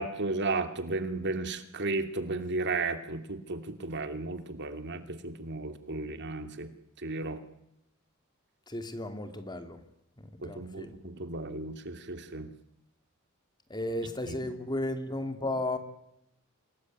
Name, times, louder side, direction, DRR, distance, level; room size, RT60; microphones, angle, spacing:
voice 1, 0.0-6.7 7.0-7.4 10.4-12.5 14.0-14.4, right 3 dB, 55° right, 9 dB, 2.6 m, -34 dB
voice 2, 8.7-9.8 10.4-10.9 13.7-15.8, left 1 dB, 20° left, 7 dB, 3.0 m, -34 dB
27.5 x 19.5 x 9.6 m, 0.82 s
head